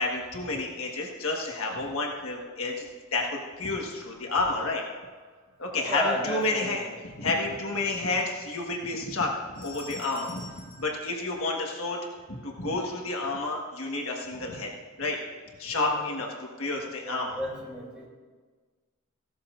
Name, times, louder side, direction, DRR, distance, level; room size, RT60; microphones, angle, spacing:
voice 1, 0.0-4.8 5.6-12.0 12.3-14.7 15.0-15.2 15.6-17.4, left 2 dB, 65° left, 0 dB, 1.5 m, -30 dB
voice 2, 5.9-7.0 15.7-16.0 17.0-18.1, equal, 5° right, -5 dB, 3.1 m, -33 dB
sound 1, 9.5-12.0, left 1 dB, 40° left, 4.1 m, -48 dB
16.5 x 13.0 x 2.6 m, 1.4 s
head